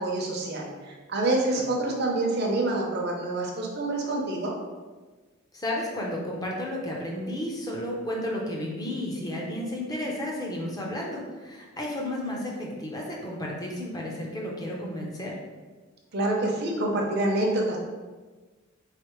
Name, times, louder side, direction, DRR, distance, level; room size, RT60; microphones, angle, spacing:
voice 1, 0.0-4.5 16.1-17.8, right 2 dB, 50° right, -1 dB, 0.7 m, -27 dB
voice 2, 5.5-15.3, left 1 dB, 20° left, -2 dB, 0.7 m, -32 dB
4.2 x 3.3 x 3.1 m, 1.3 s
head